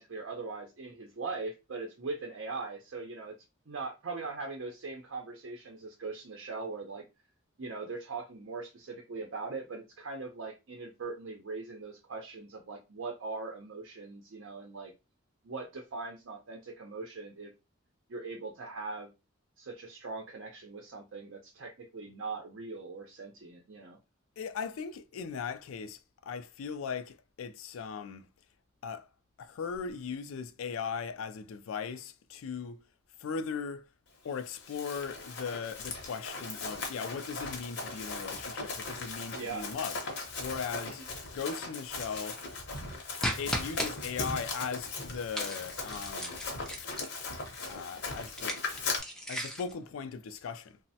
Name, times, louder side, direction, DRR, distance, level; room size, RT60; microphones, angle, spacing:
voice 1, 0.0-3.4 3.7-7.0 7.6-14.9 15.4-17.5 18.1-19.1 19.6-24.0 39.3-39.7 40.8-41.1, right 3 dB, 70° right, 0.6 m, -40 dB
voice 2, 24.4-28.3 28.8-29.1 29.4-32.8 33.2-33.9 34.2-41.0 41.3-42.4 43.4-46.4 47.7-48.8 49.3-50.8, left 6 dB, 80° left, 0.3 m, -38 dB
Run, 34.4-49.0, left 3 dB, 55° left, 0.7 m, -38 dB
sound 1, 43.2-43.9 45.3-47.2 48.3-49.7, equal, 5° left, 0.4 m, -36 dB
3.1 x 2.0 x 2.7 m
head